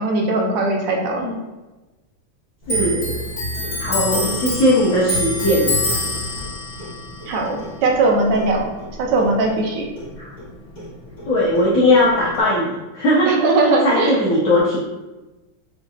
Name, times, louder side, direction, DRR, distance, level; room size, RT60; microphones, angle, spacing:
voice 1, 0.0-1.2 7.3-8.7 9.0-9.9 13.2-14.1, right 2 dB, 70° right, 0 dB, 1.2 m, -19 dB
Clock, 2.6-9.7 10.0-11.3 11.6-12.4, left 1 dB, 25° left, 1.0 m, -26 dB
voice 2, 2.7-3.2 3.8-5.7 10.2-10.3 11.3-13.4 13.8-14.8, left 1 dB, 70° left, -7 dB, 0.8 m, -18 dB
5.2 x 2.7 x 2.4 m, 1.1 s
omnidirectional pair, 2.4 m